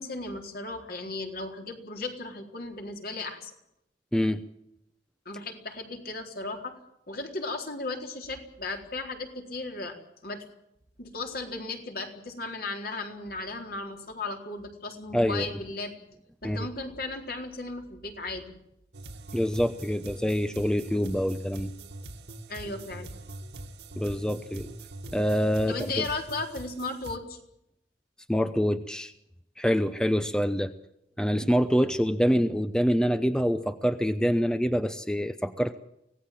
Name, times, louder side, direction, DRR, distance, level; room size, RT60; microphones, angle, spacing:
voice 1, 0.0-3.5 5.3-6.8 7.1-10.4 11.0-15.9 16.4-18.5 22.5-23.1 25.7-27.4, left 3 dB, 55° left, 3 dB, 4.0 m, -36 dB
voice 2, 15.1-15.5 16.4-16.7 19.3-21.7 24.0-24.7 25.1-26.0 28.3-29.1 29.6-30.7 31.2-35.8, equal, 5° left, 10 dB, 0.8 m, -26 dB
sound 1, 18.9-27.2, right 2 dB, 70° right, 2.0 m, -43 dB
25.0 x 18.0 x 7.6 m, 0.80 s
head